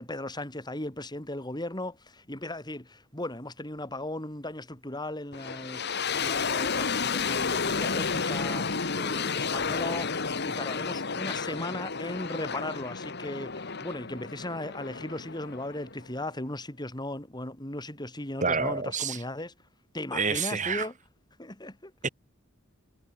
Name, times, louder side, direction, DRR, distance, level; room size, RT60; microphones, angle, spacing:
voice 1, 0.0-19.5 19.9-20.9 21.4-21.9, left 1 dB, 20° left, 4.4 m, -37 dB
sound 1, 5.3-16.3, left 5 dB, 55° left, 1.9 m, -31 dB
voice 2, 18.4-19.2 20.1-20.9 22.0-22.1, right 5 dB, 40° right, 4.0 m, -28 dB
head